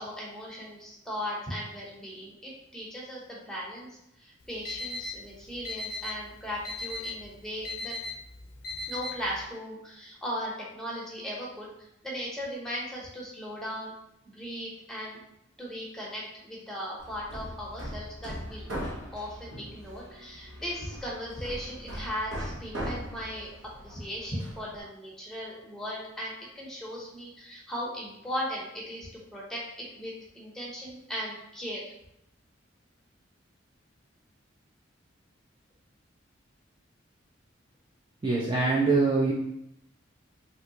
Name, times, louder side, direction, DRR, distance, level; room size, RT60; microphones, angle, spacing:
voice 1, 0.0-7.9 8.9-11.7 12.0-13.9 14.2-15.2 15.6-18.7 19.1-23.5 23.8-31.9, equal, 5° left, -5 dB, 0.8 m, -37 dB
Alarm, 4.4-9.4, left 3 dB, 55° left, 0.5 m, -38 dB
Hammer, 17.0-24.8, equal, 75° right, 0.8 m, -40 dB
voice 2, 38.2-39.3, right 3 dB, 25° right, -4 dB, 0.4 m, -23 dB
3.4 x 2.7 x 2.8 m, 0.79 s
head